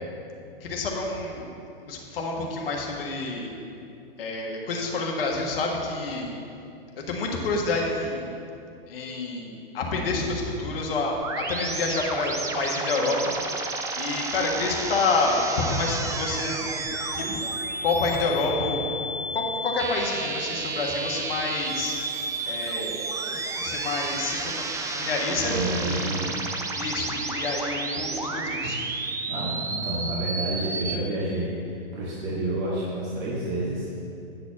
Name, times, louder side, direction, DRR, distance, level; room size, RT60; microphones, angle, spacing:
voice 1, 0.6-1.5 1.8-3.5 4.2-6.3 7.1-8.3 8.9-13.3 14.0-16.6 17.1-17.4 17.8-18.8 19.3-23.0 23.6-26.2 26.8-28.8, left 3 dB, 70° left, 0 dB, 1.6 m, -28 dB
sound 1, 11.2-30.9, right 3 dB, 10° right, 0.5 m, -31 dB
voice 2, 25.4-26.4 29.3-33.9, right 1 dB, 50° right, -6 dB, 1.9 m, -29 dB
9.5 x 4.2 x 7.1 m, 2.6 s
hypercardioid pair, 115°, 30 cm